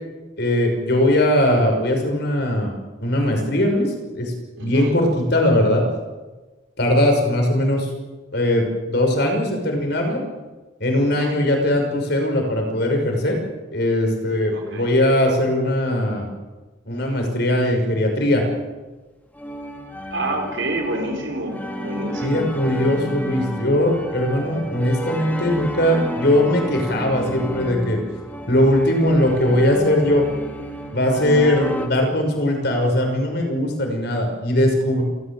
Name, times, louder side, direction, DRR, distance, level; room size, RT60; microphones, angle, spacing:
voice 1, 0.4-2.7 3.0-4.3 4.6-5.8 6.8-7.9 8.3-10.2 10.8-13.4 13.7-16.3 16.9-18.4 22.2-28.0 28.5-30.3 30.9-35.0, left 1 dB, 55° left, 2 dB, 6.0 m, -20 dB
voice 2, 4.6-4.9 11.0-11.3 14.5-14.9 20.1-22.4, right 1 dB, 70° right, 2 dB, 4.4 m, -28 dB
sound 1, 19.3-31.9, equal, 10° left, 2.5 m, -31 dB
29.0 x 14.5 x 7.7 m, 1.2 s
head